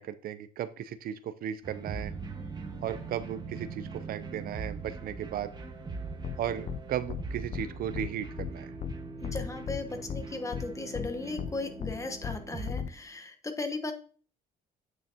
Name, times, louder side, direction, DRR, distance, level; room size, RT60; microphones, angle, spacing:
voice 1, 0.0-2.1 2.8-5.5 6.4-8.7, right 10 dB, 60° right, 12 dB, 0.5 m, -36 dB
sound 1, 1.6-12.7, right 4 dB, 25° right, 1.4 m, -41 dB
sound 2, 6.2-6.4 6.7-6.8 7.1-7.2 7.5-7.7 7.9-8.1 8.4-8.5 8.8-8.9 9.2-9.8 10.1-10.2 10.5-10.6 10.9-11.1 11.4-11.5 11.8-11.9 12.2-12.4 12.7-12.9, left 7 dB, 40° left, 0.6 m, -35 dB
voice 2, 9.2-13.9, left 3 dB, 20° left, 7 dB, 1.1 m, -36 dB
8.8 x 6.2 x 2.8 m, 0.40 s
cardioid pair, 110°, 17 cm